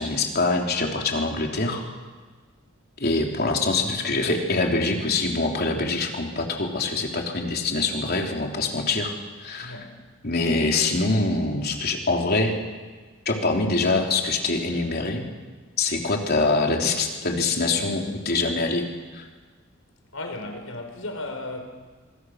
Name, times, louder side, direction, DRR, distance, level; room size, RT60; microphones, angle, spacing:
voice 1, 0.0-1.8 3.0-9.1 9.4-9.8 10.2-12.6 13.3-15.2 15.8-18.8 19.1-19.2, left 3 dB, 50° left, 1 dB, 3.5 m, -24 dB
voice 2, 9.6-10.0 20.1-21.6, left 2 dB, 80° left, 4 dB, 4.8 m, -35 dB
26.0 x 24.0 x 6.5 m, 1.4 s
head